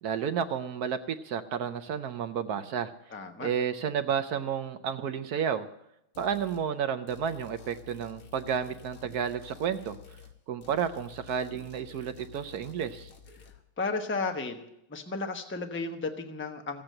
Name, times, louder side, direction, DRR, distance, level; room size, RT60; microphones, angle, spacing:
voice 1, 0.0-3.1 3.4-5.7 6.2-10.0 10.5-13.1, right 7 dB, 70° right, 9 dB, 0.9 m, -31 dB
voice 2, 3.1-3.5 13.8-14.6 14.9-16.8, left 3 dB, 15° left, 5 dB, 0.4 m, -33 dB
sound 1, 6.1-6.7 7.1-10.4 10.6-13.5, left 7 dB, 45° left, 1.6 m, -51 dB
14.5 x 8.8 x 7.7 m, 0.81 s
omnidirectional pair, 2.3 m